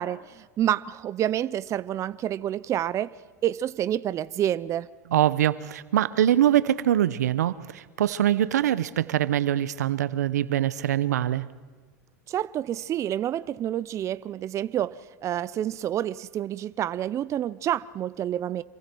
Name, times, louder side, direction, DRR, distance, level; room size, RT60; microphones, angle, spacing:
voice 1, 0.0-3.1 3.4-4.9 12.3-18.6, right 11 dB, 35° right, 0.6 m, -28 dB
voice 2, 5.1-11.4, right 11 dB, 85° right, 0.9 m, -23 dB
27.5 x 23.5 x 4.6 m
hypercardioid pair, 105°, 9 cm